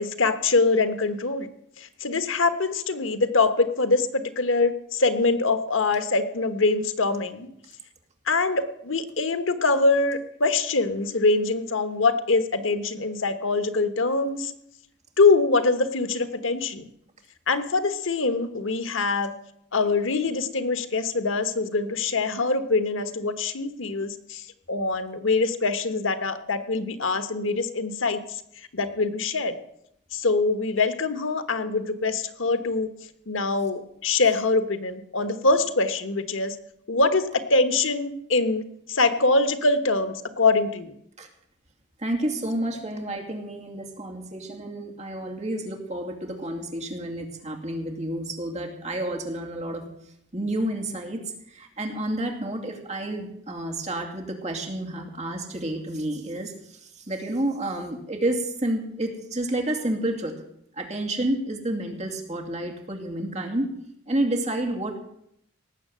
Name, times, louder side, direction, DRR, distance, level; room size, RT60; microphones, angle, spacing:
voice 1, 0.0-1.5 2.0-7.5 8.3-14.5 15.2-16.8 17.5-19.3 19.7-24.4 24.7-28.2 28.7-29.5 30.1-32.9 33.3-36.6 36.9-38.6 38.9-40.9, left 3 dB, 85° left, 11 dB, 1.2 m, -24 dB
voice 2, 42.0-49.9 50.3-51.2 51.5-60.4 60.8-63.7 64.1-65.0, right 1 dB, 35° right, 2 dB, 2.5 m, -30 dB
18.0 x 7.6 x 7.5 m, 0.74 s
head